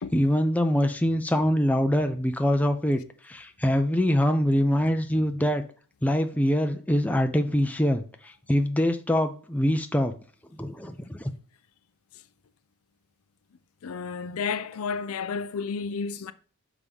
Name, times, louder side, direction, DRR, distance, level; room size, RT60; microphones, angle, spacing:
voice 1, 0.0-5.6 6.0-8.0 8.5-10.1 10.6-11.3, equal, 5° left, 0.6 m, -24 dB
voice 2, 13.8-16.3, left 5 dB, 70° left, 0.5 m, -31 dB
6.5 x 3.6 x 5.2 m
head